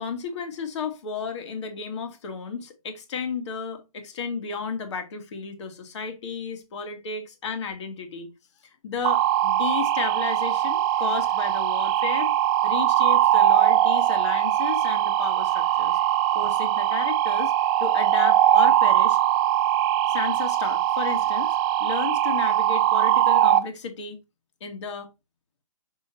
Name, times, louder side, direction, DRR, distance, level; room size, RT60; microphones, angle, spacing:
voice 1, 0.0-8.3 8.6-12.3 12.6-16.0 16.3-17.5 17.8-19.2 20.1-21.5 21.8-24.2 24.6-25.1, left 5 dB, 55° left, 2.0 m, -33 dB
sound 1, 9.0-23.6, right 12 dB, 20° right, 0.5 m, -21 dB
6.5 x 6.1 x 2.7 m
hypercardioid pair, 145°, 18 cm